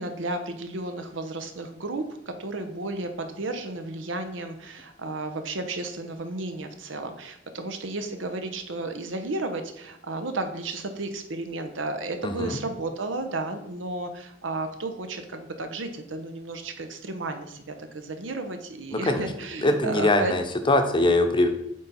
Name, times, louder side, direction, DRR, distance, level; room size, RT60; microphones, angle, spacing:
voice 1, 0.0-20.3, right 2 dB, 85° right, 7 dB, 0.9 m, -33 dB
voice 2, 12.2-12.6 18.9-19.3 19.6-21.5, left 1 dB, 25° left, 6 dB, 0.8 m, -22 dB
8.5 x 4.0 x 4.2 m, 0.78 s
head